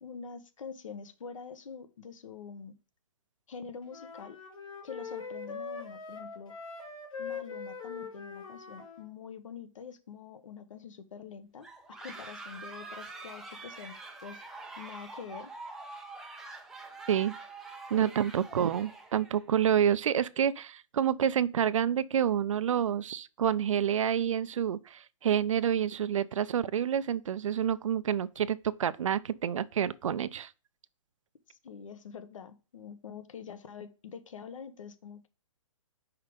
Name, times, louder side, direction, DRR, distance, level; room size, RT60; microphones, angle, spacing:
voice 1, 0.0-2.8 3.5-4.4 4.8-6.5 7.2-14.4 14.8-15.5 31.5-35.3, left 6 dB, 70° left, 1.1 m, -45 dB
sound 1, 3.9-9.1, left 5 dB, 85° left, 3.0 m, -42 dB
sound 2, 11.6-19.4, right 3 dB, ahead, 0.4 m, -45 dB
voice 2, 17.9-30.5, right 9 dB, 70° right, 0.5 m, -28 dB
5.7 x 4.8 x 5.1 m
hypercardioid pair, 165°, 17 cm